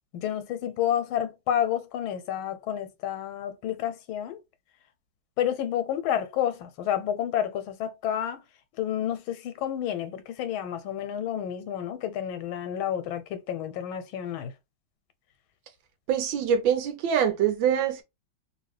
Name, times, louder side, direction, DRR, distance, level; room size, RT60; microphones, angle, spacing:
voice 1, 0.1-4.4 5.4-8.4 8.8-14.5, left 10 dB, 90° left, 1.5 m, -30 dB
voice 2, 16.1-18.0, right 8 dB, 80° right, 1.4 m, -24 dB
3.1 x 2.8 x 3.2 m
omnidirectional pair, 2.2 m